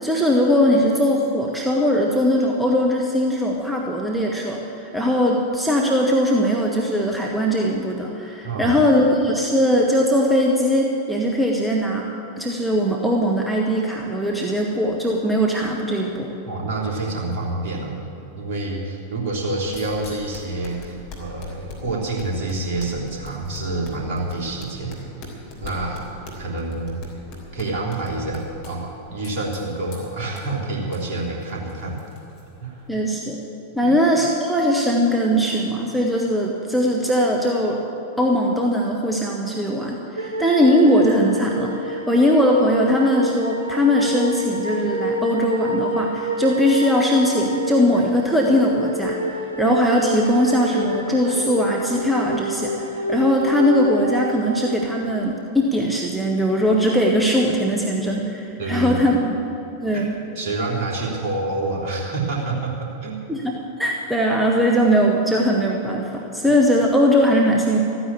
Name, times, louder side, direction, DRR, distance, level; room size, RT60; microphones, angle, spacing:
voice 1, 0.0-12.0 12.4-16.3 32.9-33.4 33.7-37.8 38.2-59.4 59.8-60.2 63.3-67.8, equal, 5° right, -1 dB, 1.3 m, -20 dB
voice 2, 8.4-8.8 16.5-18.0 18.3-25.1 25.6-27.0 27.5-32.0 32.6-32.8 33.8-33.9 58.6-59.0 59.9-60.1 60.3-63.2, right 2 dB, 45° right, -3 dB, 3.3 m, -27 dB
sound 1, 19.3-33.1, left 2 dB, 45° left, 3.5 m, -42 dB
sound 2, 40.2-55.3, equal, 80° right, 0.9 m, -28 dB
14.0 x 9.6 x 8.5 m, 3.0 s
figure-of-eight pair, 90°, 0 cm